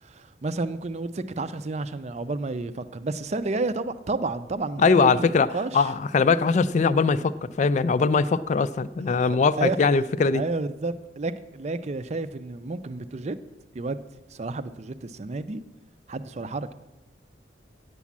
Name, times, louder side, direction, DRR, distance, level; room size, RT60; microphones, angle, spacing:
voice 1, 0.0-5.9 9.2-9.8 10.3-13.4 13.7-14.0 14.3-15.6 16.1-16.7, right 3 dB, 35° right, 13 dB, 0.5 m, -31 dB
voice 2, 4.8-5.5 5.7-10.4, left 4 dB, 40° left, 15 dB, 0.3 m, -21 dB
8.3 x 8.2 x 7.2 m, 1.0 s
head